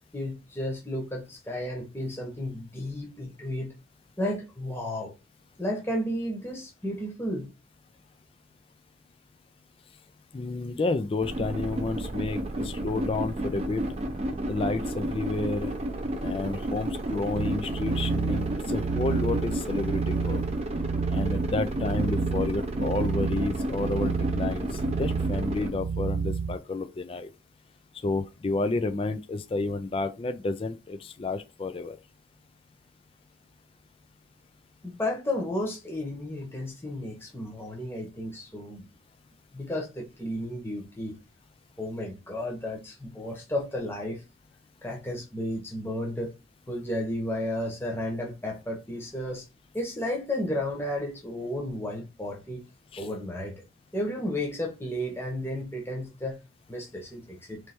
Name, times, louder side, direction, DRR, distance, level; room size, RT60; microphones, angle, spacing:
voice 1, 0.1-3.7 4.2-5.1 5.6-7.5 34.8-38.8 39.5-41.1 41.8-44.2 44.8-46.3 46.7-49.5 49.7-52.6 53.0-53.5 53.9-56.4 56.7-57.6, left 1 dB, 10° left, 1.0 m, -33 dB
voice 2, 10.3-13.8 14.4-15.7 16.2-20.4 21.1-27.3 28.0-32.0 52.9-53.1, left 3 dB, 25° left, 0.3 m, -30 dB
sound 1, 11.2-25.7, right 1 dB, 30° right, 0.6 m, -32 dB
sound 2, 17.4-26.6, right 5 dB, 85° right, 0.3 m, -30 dB
3.2 x 3.1 x 4.4 m
head